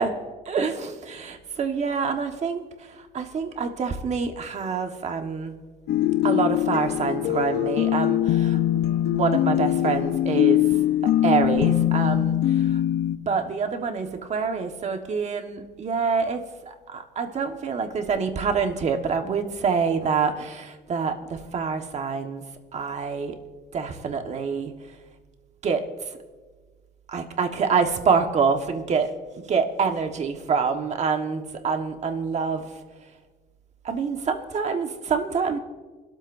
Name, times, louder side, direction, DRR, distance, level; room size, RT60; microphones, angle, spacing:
voice 1, 0.5-2.6 3.1-5.5 6.2-8.6 9.1-10.6 11.0-12.4 13.3-16.4 16.9-22.5 22.7-23.4 23.7-24.7 25.6-25.9 27.1-29.1 29.5-32.7 33.8-35.6, right 5 dB, 40° right, 5 dB, 1.5 m, -26 dB
sound 1, 5.9-13.2, left 12 dB, 80° left, 0.8 m, -22 dB
28.0 x 13.0 x 2.7 m, 1.4 s
cardioid pair, 110°, 17 cm